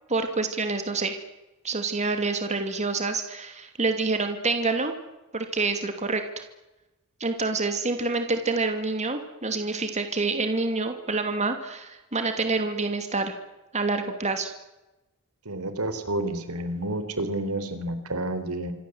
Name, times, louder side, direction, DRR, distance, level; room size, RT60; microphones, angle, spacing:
voice 1, 0.1-1.2 1.6-4.9 5.3-6.4 7.2-13.3 13.7-14.5, right 3 dB, 30° right, 6 dB, 2.7 m, -27 dB
voice 2, 15.5-18.7, right 1 dB, 75° right, 10 dB, 3.9 m, -30 dB
27.0 x 24.0 x 8.1 m, 1.0 s
head